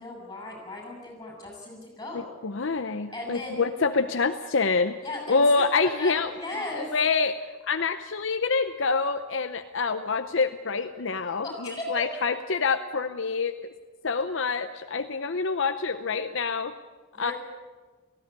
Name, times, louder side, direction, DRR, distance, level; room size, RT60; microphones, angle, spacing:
voice 1, 0.0-2.3 3.1-3.5 5.0-5.4 5.8-6.9 11.4-11.9 17.1-17.3, left 2 dB, 20° left, 0 dB, 7.9 m, -37 dB
voice 2, 2.4-5.0 5.3-6.3 6.9-7.4 7.7-13.7 14.0-16.7 17.2-17.3, left 4 dB, 60° left, 8 dB, 0.7 m, -26 dB
18.5 x 16.0 x 9.8 m, 1.4 s
head